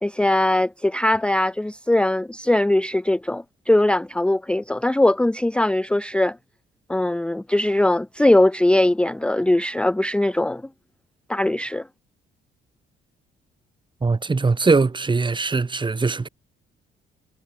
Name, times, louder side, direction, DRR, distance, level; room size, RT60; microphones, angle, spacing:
voice 1, 0.0-6.4 6.9-10.6 11.3-11.9, left 1 dB, 5° left, 0.7 m, -20 dB
voice 2, 14.0-16.3, right 4 dB, 25° right, 1.8 m, -21 dB
cardioid pair, 90°, 20 cm